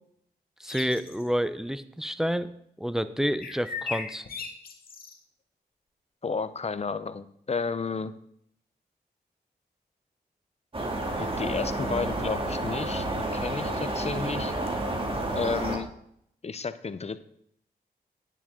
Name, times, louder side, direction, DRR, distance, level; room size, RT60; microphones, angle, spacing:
voice 1, 0.6-2.5 2.8-4.2, equal, 5° right, 13 dB, 0.7 m, -29 dB
sound 1, 0.7-1.3 3.4-5.2, left 4 dB, 60° left, 1.6 m, -37 dB
voice 2, 6.2-8.1 11.1-13.1 13.3-14.5 15.3-15.9 16.4-17.2, left 5 dB, 40° left, 13 dB, 0.7 m, -32 dB
sound 2, 10.7-15.8, right 1 dB, 30° right, 2.3 m, -30 dB
10.0 x 9.8 x 3.8 m, 0.70 s
cardioid pair, 65°, 17 cm